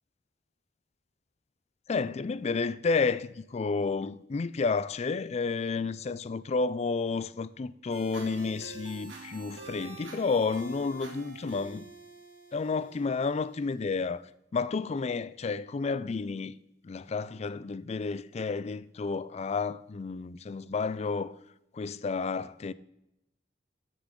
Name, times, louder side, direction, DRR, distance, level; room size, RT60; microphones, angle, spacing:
voice 1, 1.9-11.9 12.5-14.2 14.5-16.6 16.8-21.4 21.7-22.7, left 4 dB, 35° left, 0.4 m, -31 dB
sound 1, 7.9-13.9, right 3 dB, 80° right, 2.3 m, -47 dB
13.0 x 6.8 x 3.8 m
head